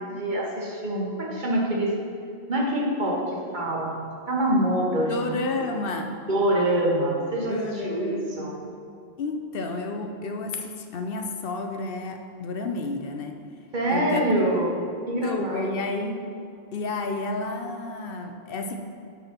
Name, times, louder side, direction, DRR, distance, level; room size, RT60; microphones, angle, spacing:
voice 1, 0.0-1.9 2.5-4.0 4.3-5.3 6.3-8.5 13.7-14.7 15.1-15.8, right 1 dB, 50° right, -2 dB, 1.3 m, -25 dB
voice 2, 5.1-6.1 7.5-8.6 9.2-13.4 13.9-14.6 15.2-16.3 16.7-18.7, left 3 dB, 65° left, 5 dB, 0.8 m, -31 dB
7.9 x 3.9 x 5.8 m, 2.4 s
omnidirectional pair, 1.1 m